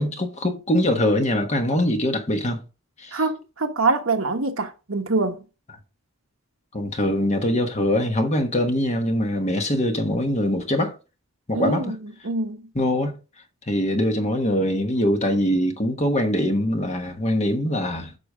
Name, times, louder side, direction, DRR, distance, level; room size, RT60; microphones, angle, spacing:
voice 1, 0.0-2.6 3.0-3.2 6.7-10.9 11.5-11.9 12.7-13.1 13.7-18.1, left 1 dB, 30° left, 1.3 m, -23 dB
voice 2, 3.1-5.4 11.5-11.9 12.2-12.6, right 3 dB, 65° right, 1.2 m, -24 dB
8.2 x 6.0 x 3.6 m
head